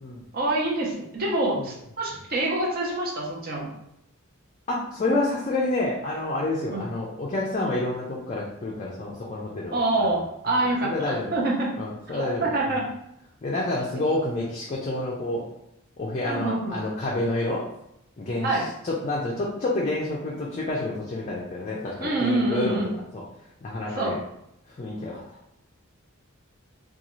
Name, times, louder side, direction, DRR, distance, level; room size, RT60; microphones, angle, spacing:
voice 1, 0.3-3.7 6.7-6.8 9.7-11.7 12.1-12.9 13.9-14.0 16.2-16.8 18.4-18.7 22.0-22.9 23.9-24.2, right 2 dB, 45° right, -2 dB, 0.7 m, -26 dB
voice 2, 4.7-10.2 10.5-11.4 11.8-12.8 13.4-15.5 16.0-17.7 18.2-22.8 23.1-23.2 23.6-24.2 24.7-25.4, left 2 dB, 35° left, -4 dB, 0.4 m, -29 dB
2.6 x 2.3 x 3.0 m, 0.79 s
head